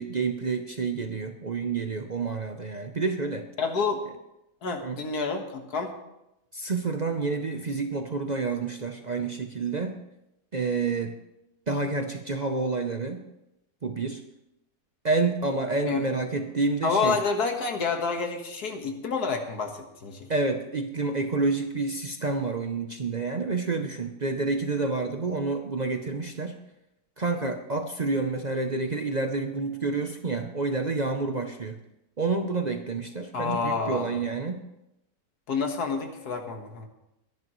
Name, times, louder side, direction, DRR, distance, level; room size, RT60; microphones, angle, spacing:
voice 1, 0.0-3.4 4.8-5.0 6.5-10.0 10.5-11.2 11.7-13.2 13.8-14.2 15.0-17.2 20.3-26.6 27.2-31.8 32.2-34.6, right 3 dB, 40° right, 5 dB, 0.6 m, -29 dB
voice 2, 3.6-4.0 4.6-5.9 15.9-16.0 16.8-20.3 33.3-34.2 35.5-36.9, left 4 dB, 90° left, 4 dB, 2.0 m, -28 dB
22.5 x 10.5 x 3.1 m, 0.88 s
omnidirectional pair, 1.6 m